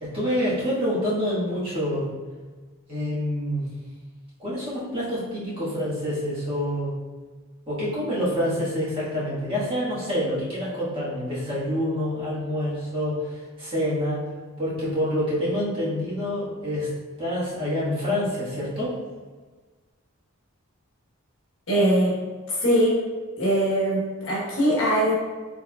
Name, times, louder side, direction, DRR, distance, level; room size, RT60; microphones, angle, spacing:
voice 1, 0.0-2.1 2.9-3.6 4.4-6.9 7.7-14.3 14.6-16.9 17.2-19.0, equal, 25° right, -10 dB, 1.4 m, -27 dB
voice 2, 21.7-22.2 22.5-23.0 23.4-25.1, equal, 65° left, -5 dB, 1.2 m, -21 dB
4.7 x 3.5 x 2.3 m, 1.4 s
head